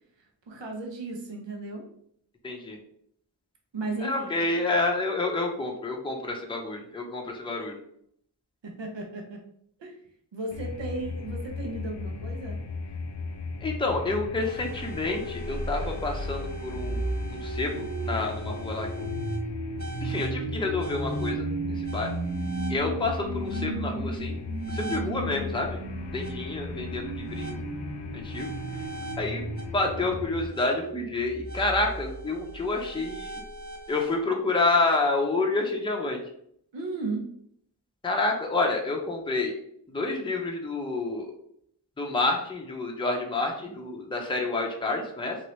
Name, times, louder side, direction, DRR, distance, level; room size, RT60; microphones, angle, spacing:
voice 1, 0.5-1.8 3.7-4.3 8.6-9.4 9.8-10.0 10.3-12.6 36.7-37.3, right 2 dB, 80° right, 1 dB, 0.7 m, -35 dB
voice 2, 2.4-2.8 4.0-7.8 13.6-17.0 17.3-19.1 20.0-22.1 22.7-24.4 24.7-25.8 26.1-27.6 28.1-28.5 29.2-29.4 29.7-33.4 33.9-36.2 38.0-39.5 39.9-41.3 42.0-45.4, left 3 dB, 10° left, 1 dB, 0.6 m, -29 dB
sound 1, 10.5-30.5, left 4 dB, 70° left, 0.5 m, -37 dB
sound 2, 14.4-34.2, right 2 dB, 40° right, 0.7 m, -35 dB
2.9 x 2.6 x 3.1 m, 0.69 s
wide cardioid pair, 45°, 44 cm